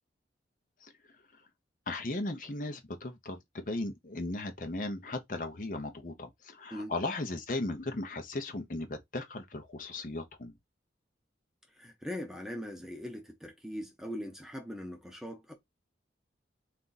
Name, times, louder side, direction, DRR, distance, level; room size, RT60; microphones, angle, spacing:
voice 1, 1.9-10.5, left 2 dB, 45° left, 0.7 m, -37 dB
voice 2, 11.8-15.5, equal, 5° right, 0.7 m, -41 dB
3.5 x 2.6 x 3.9 m
head